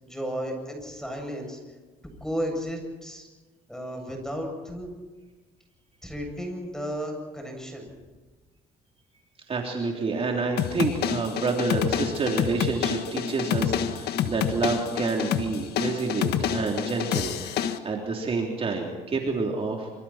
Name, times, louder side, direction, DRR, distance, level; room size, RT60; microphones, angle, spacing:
voice 1, 0.0-1.6 2.2-3.3 3.7-4.9 6.0-7.9, equal, 5° left, 2 dB, 7.9 m, -33 dB
voice 2, 9.5-19.9, right 4 dB, 35° right, 0 dB, 3.6 m, -28 dB
sound 1, 10.6-17.8, left 9 dB, 75° left, 1.6 m, -28 dB
27.0 x 26.5 x 4.5 m, 1.3 s
cardioid pair, 110°, 17 cm